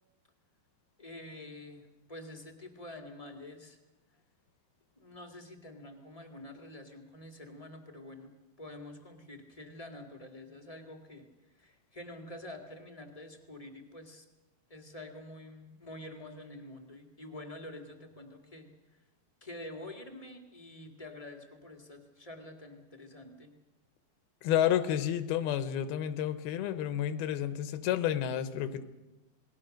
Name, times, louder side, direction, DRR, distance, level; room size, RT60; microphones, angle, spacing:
voice 1, 1.0-3.8 4.9-8.3 8.6-11.3 11.5-14.2 14.7-19.0 19.4-23.5, left 1 dB, 20° left, 4 dB, 0.9 m, -47 dB
voice 2, 24.4-28.8, left 10 dB, 80° left, 11 dB, 3.0 m, -30 dB
27.5 x 20.0 x 6.6 m, 1.0 s
omnidirectional pair, 4.4 m